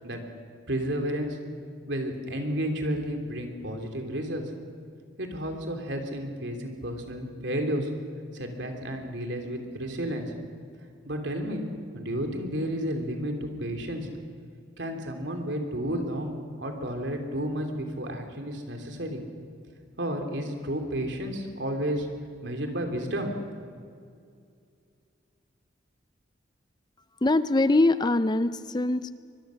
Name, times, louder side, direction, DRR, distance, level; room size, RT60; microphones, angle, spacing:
voice 1, 0.7-1.4 1.9-4.4 5.2-7.9 8.3-10.3 11.0-11.7 11.9-14.1 14.8-19.2 20.0-22.1 22.4-23.3, equal, 70° right, 4 dB, 3.2 m, -31 dB
voice 2, 27.2-29.1, left 2 dB, 20° left, 13 dB, 0.5 m, -23 dB
24.0 x 21.5 x 6.4 m, 2.3 s
head